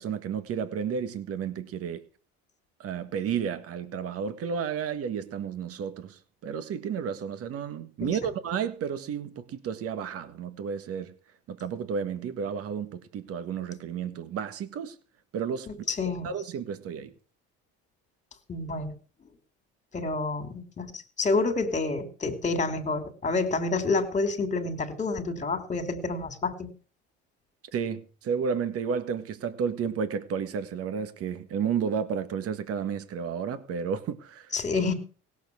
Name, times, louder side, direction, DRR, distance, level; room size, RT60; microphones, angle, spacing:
voice 1, 0.0-2.0 2.8-11.2 11.5-14.9 15.3-15.7 16.2-17.1 27.7-34.5, right 7 dB, 50° right, 1.7 m, -32 dB
voice 2, 15.7-16.3 18.5-19.0 19.9-26.7 34.5-34.9, left 3 dB, 25° left, 2.9 m, -28 dB
17.0 x 7.2 x 7.0 m
cardioid pair, 115°, 29 cm